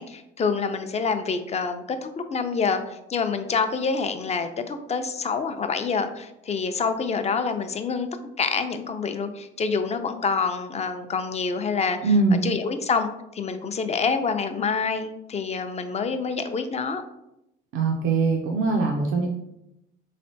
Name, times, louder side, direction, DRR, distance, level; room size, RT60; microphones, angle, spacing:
voice 1, 0.0-8.1 8.4-12.1 12.4-17.0, left 5 dB, 35° left, 8 dB, 0.4 m, -27 dB
voice 2, 12.0-12.4 17.7-19.3, right 3 dB, 80° right, 1 dB, 0.4 m, -22 dB
3.6 x 3.2 x 2.7 m, 0.85 s
cardioid pair, 90°, 20 cm